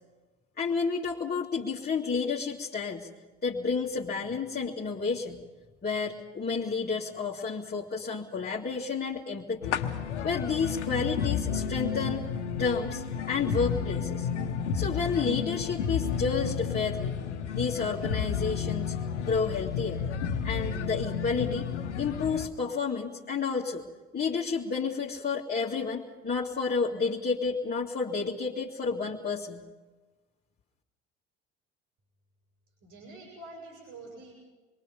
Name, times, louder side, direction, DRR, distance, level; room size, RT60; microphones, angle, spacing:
voice 1, 0.6-3.1 3.4-5.4 5.8-9.8 10.2-12.3 12.6-14.3 14.7-17.1 17.5-19.0 19.2-20.0 20.4-21.7 22.0-23.8 24.1-29.7, left 5 dB, 30° left, -4 dB, 2.4 m, -30 dB
sound 1, 9.6-22.5, left 7 dB, 85° left, 1.2 m, -31 dB
voice 2, 32.8-34.3, right 2 dB, 60° right, 0 dB, 7.2 m, -46 dB
27.5 x 22.5 x 5.4 m, 1.2 s
hypercardioid pair, 60°, 34 cm